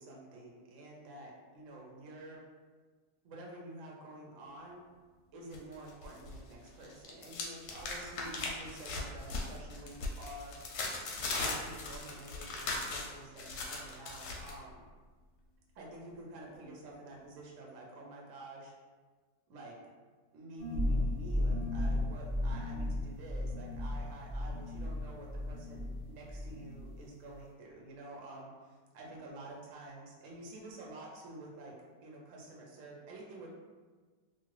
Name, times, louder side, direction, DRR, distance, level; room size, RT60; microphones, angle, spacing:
voice 1, 0.0-2.4 3.2-4.8 5.3-10.6 11.4-14.8 15.7-18.7 19.5-19.8 20.3-31.7 32.0-33.5, right 2 dB, 65° right, -2 dB, 0.8 m, -49 dB
sound 1, 5.5-6.4 6.7-14.5, left 3 dB, 70° left, 1.0 m, -39 dB
sound 2, 20.6-26.0 26.3-27.0, left 1 dB, 40° left, 0.5 m, -34 dB
2.7 x 2.5 x 3.1 m, 1.4 s
omnidirectional pair, 1.9 m